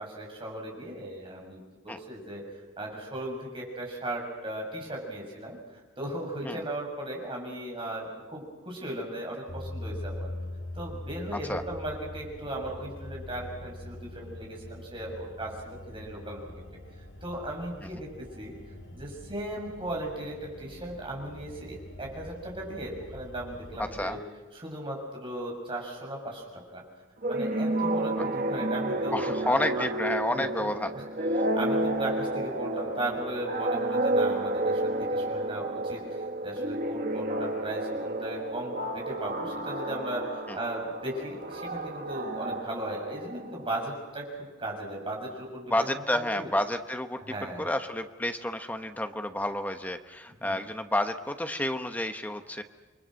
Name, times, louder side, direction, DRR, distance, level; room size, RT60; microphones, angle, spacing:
voice 1, 0.0-2.4 2.8-5.6 6.0-10.3 10.7-16.5 17.2-18.6 18.9-24.2 24.5-26.8 27.3-29.9 30.3-30.7 30.9-31.1 31.5-46.5 47.2-47.7 50.4-50.6, right 1 dB, 25° right, -1 dB, 6.9 m, -37 dB
sound 1, 9.5-24.1, left 1 dB, 70° left, 3.1 m, -43 dB
voice 2, 23.8-24.2 29.1-30.9 40.5-40.6 45.7-47.2 47.6-52.6, left 1 dB, 10° left, 7 dB, 1.1 m, -30 dB
sound 2, 27.2-43.6, right 1 dB, 45° right, 1.4 m, -31 dB
29.0 x 22.5 x 6.5 m, 1.3 s
head